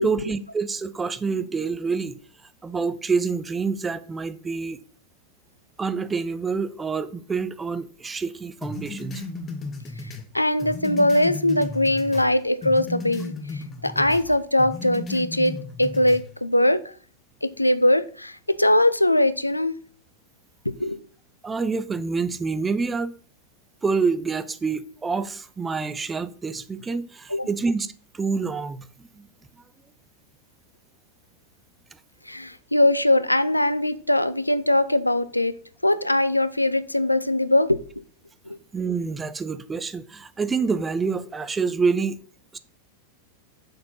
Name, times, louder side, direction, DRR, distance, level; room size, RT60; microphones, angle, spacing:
voice 1, 0.0-2.2 2.6-4.8 5.8-9.2 21.4-23.1 23.8-28.9 29.2-29.3 38.7-42.2 42.5-42.6, right 4 dB, 15° right, 0.5 m, -27 dB
sound 1, 8.6-12.3 12.6-14.3 14.6-16.2, left 3 dB, 25° left, 1.3 m, -34 dB
voice 2, 10.3-16.8 17.4-19.8 20.7-21.0 27.3-27.5 32.3-35.5 35.8-37.8 38.5-38.6, left 1 dB, 85° left, 0.4 m, -21 dB
6.7 x 4.3 x 5.4 m
figure-of-eight pair, 90°, 0 cm